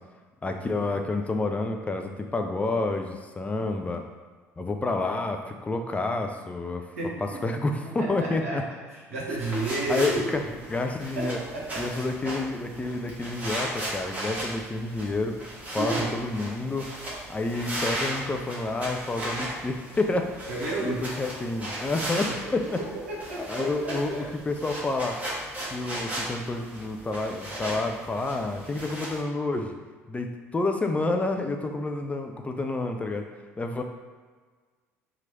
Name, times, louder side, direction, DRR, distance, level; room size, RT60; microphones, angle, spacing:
voice 1, 0.4-4.0 4.6-6.8 7.4-8.6 9.9-11.4 11.8-15.4 15.7-16.9 17.3-20.5 20.8-22.8 23.4-25.2 25.7-29.7 30.1-30.3 30.5-33.2 33.6-33.8, left 2 dB, 15° left, 4 dB, 0.3 m, -29 dB
voice 2, 7.0-7.6 7.8-8.6 8.9-10.4 11.2-12.1 15.8-16.1 20.5-21.1 22.3-22.6 22.9-24.3, right 2 dB, 75° right, -4 dB, 0.8 m, -32 dB
sound 1, 9.3-29.2, right 1 dB, 20° right, 1.2 m, -36 dB
3.0 x 2.5 x 4.1 m, 1.4 s
figure-of-eight pair, 55°, 8 cm